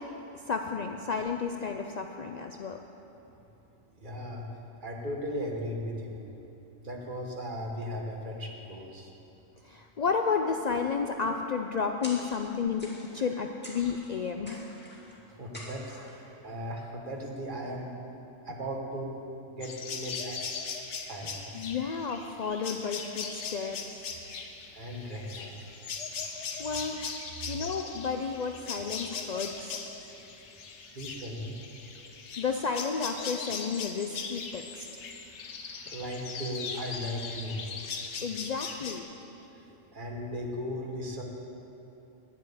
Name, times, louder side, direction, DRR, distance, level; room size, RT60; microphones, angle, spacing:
voice 1, 0.5-2.8 9.6-14.8 21.5-23.8 26.6-27.2 27.5-29.8 32.4-34.9 38.2-39.0, left 5 dB, 85° left, 4 dB, 0.3 m, -32 dB
voice 2, 4.0-4.4 4.8-6.2 6.8-9.1 15.4-17.9 18.4-19.1 19.5-20.6 20.9-21.7 24.7-25.8 26.5-26.8 27.4-27.6 29.2-29.3 30.2-30.3 30.9-31.6 31.9-32.1 35.9-37.6 39.5-41.2, equal, 40° right, 0 dB, 1.4 m, -37 dB
sound 1, 12.0-12.5 12.8-13.3 13.6-14.1 14.5-15.1 15.5-16.2, left 1 dB, 10° left, 2.2 m, -46 dB
sound 2, 19.6-39.0, left 5 dB, 65° left, 1.2 m, -39 dB
10.5 x 7.4 x 8.6 m, 3.0 s
omnidirectional pair, 1.3 m